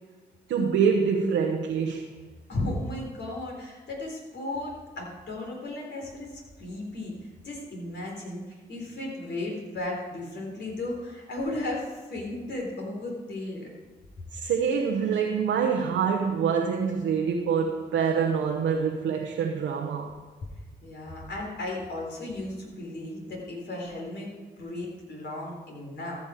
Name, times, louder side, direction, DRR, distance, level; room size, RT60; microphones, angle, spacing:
voice 1, 0.5-2.1 14.3-20.2, right 6 dB, 80° right, 0.9 m, -25 dB
voice 2, 2.5-7.1 7.4-8.4 8.7-13.7 20.8-26.2, left 2 dB, 60° left, 3.8 m, -35 dB
14.5 x 6.1 x 5.0 m
hypercardioid pair, 40°, 20 cm